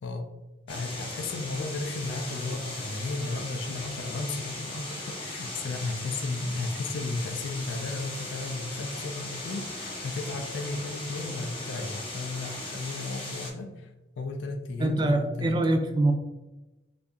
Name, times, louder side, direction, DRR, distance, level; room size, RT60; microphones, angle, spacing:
voice 1, 0.7-15.6, left 3 dB, 80° left, 4 dB, 0.4 m, -34 dB
sound 1, 0.7-13.5, left 2 dB, 30° left, 0.8 m, -38 dB
voice 2, 14.8-16.1, right 2 dB, 25° right, 5 dB, 0.3 m, -24 dB
2.8 x 2.5 x 3.5 m, 1.1 s
head